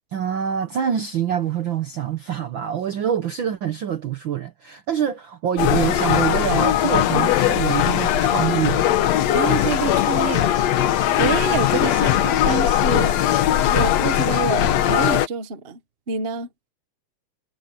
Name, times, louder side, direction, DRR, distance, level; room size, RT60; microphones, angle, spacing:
voice 1, 0.1-8.9, right 9 dB, 70° right, 1.2 m, -25 dB
sound 1, 5.6-15.3, left 11 dB, 70° left, 2.1 m, -19 dB
voice 2, 9.3-10.7 11.2-13.2 13.7-15.8 16.1-16.5, right 6 dB, 45° right, 0.7 m, -27 dB
omnidirectional pair, 3.4 m